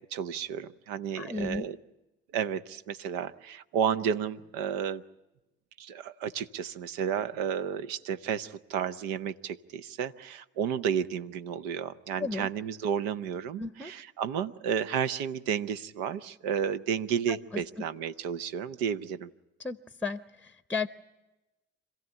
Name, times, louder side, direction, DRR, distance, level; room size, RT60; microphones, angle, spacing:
voice 1, 0.0-1.8 2.3-5.0 5.8-19.3, right 8 dB, 75° right, 13 dB, 0.8 m, -32 dB
voice 2, 1.2-1.7 12.2-12.5 13.6-13.9 17.3-17.6 19.6-20.9, left 4 dB, 5° left, 12 dB, 0.8 m, -34 dB
26.5 x 16.0 x 9.9 m, 1.0 s
hypercardioid pair, 45°, 35 cm